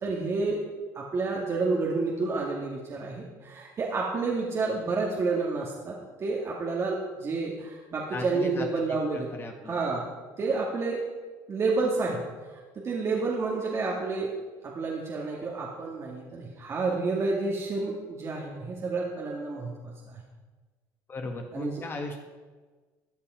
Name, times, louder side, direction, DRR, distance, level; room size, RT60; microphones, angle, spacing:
voice 1, 0.0-0.6 0.9-9.3 9.6-10.1 10.4-11.0 11.5-14.3 14.6-20.2 21.5-21.8, right 3 dB, 40° right, -3 dB, 2.2 m, -30 dB
voice 2, 8.1-8.7 9.1-9.8 21.1-22.2, left 2 dB, 30° left, 4 dB, 1.6 m, -36 dB
14.5 x 8.6 x 5.0 m, 1.3 s
supercardioid pair, 95°, 7 cm